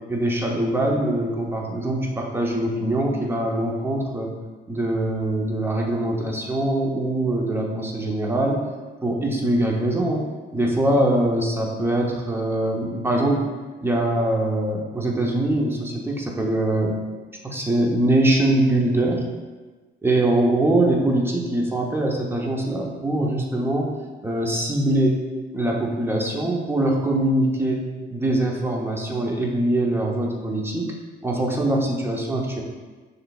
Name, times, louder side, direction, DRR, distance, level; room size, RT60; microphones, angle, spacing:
voice 1, 0.1-4.3 4.7-8.6 9.0-13.5 13.8-17.1 17.4-19.2 20.0-24.0 24.2-25.3 25.5-27.8 28.1-30.9 31.2-32.6, right 1 dB, 10° right, -1 dB, 0.8 m, -23 dB
6.2 x 3.3 x 2.4 m, 1.3 s
cardioid pair, 90°, 20 cm